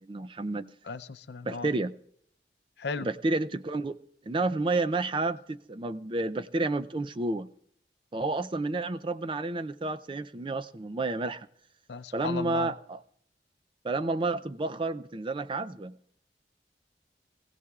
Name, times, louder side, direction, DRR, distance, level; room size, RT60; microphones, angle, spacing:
voice 1, 0.0-0.7 1.5-1.9 3.0-4.0 4.3-7.5 8.1-11.5 12.1-13.0 13.8-16.0, right 2 dB, 30° right, 0.4 m, -30 dB
voice 2, 0.8-1.7 2.8-3.1 11.9-12.7, left 4 dB, 70° left, 0.6 m, -36 dB
23.5 x 16.5 x 2.4 m
head